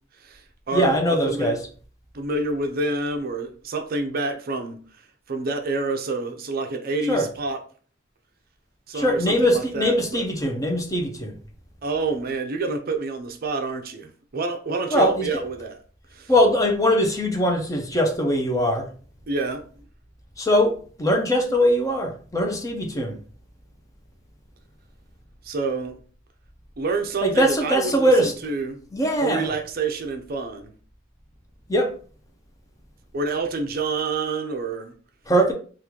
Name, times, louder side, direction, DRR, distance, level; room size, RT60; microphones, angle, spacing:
voice 1, 0.2-1.5 2.1-4.8 5.3-7.6 8.9-10.2 11.8-15.8 16.1-16.3 19.3-19.6 25.4-26.0 26.8-28.8 29.2-30.7 33.1-34.9, right 3 dB, 50° right, 0.5 m, -28 dB
voice 2, 0.7-1.6 7.1-7.3 8.9-11.4 14.9-15.3 16.3-18.9 20.4-23.2 27.2-28.3 28.9-29.5 31.7-31.9 35.3-35.5, equal, 15° left, 0.5 m, -21 dB
3.0 x 2.4 x 3.5 m
head